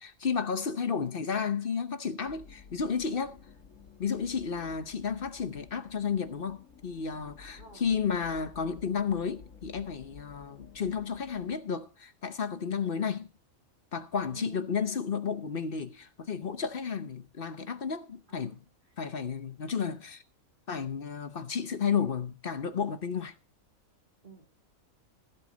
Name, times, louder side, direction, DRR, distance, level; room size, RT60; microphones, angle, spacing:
voice 1, 0.0-3.4 4.0-13.3 13.9-18.6 19.0-20.2 20.7-23.3, left 6 dB, 45° left, 1.0 m, -32 dB
sound 1, 2.2-11.6, left 6 dB, 65° left, 2.2 m, -53 dB
voice 2, 7.4-7.9 14.3-14.8 18.3-18.6 24.2-24.4, right 3 dB, 35° right, 2.6 m, -50 dB
15.5 x 8.1 x 5.1 m
omnidirectional pair, 1.4 m